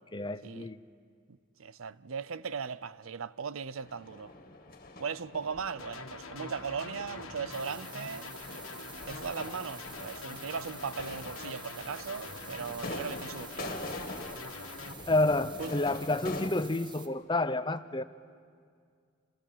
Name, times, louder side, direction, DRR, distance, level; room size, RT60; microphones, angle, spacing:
voice 1, 0.1-0.8 15.1-18.0, left 2 dB, 20° left, 0.7 m, -29 dB
voice 2, 1.3-4.3 5.0-8.3 9.1-13.9 15.6-15.7, right 6 dB, 75° right, 0.6 m, -38 dB
sound 1, 3.8-16.5, left 2 dB, 45° left, 2.1 m, -44 dB
sound 2, 5.8-14.9, left 4 dB, 85° left, 1.8 m, -45 dB
sound 3, 7.5-17.1, right 5 dB, 20° right, 1.2 m, -49 dB
28.0 x 28.0 x 7.5 m
head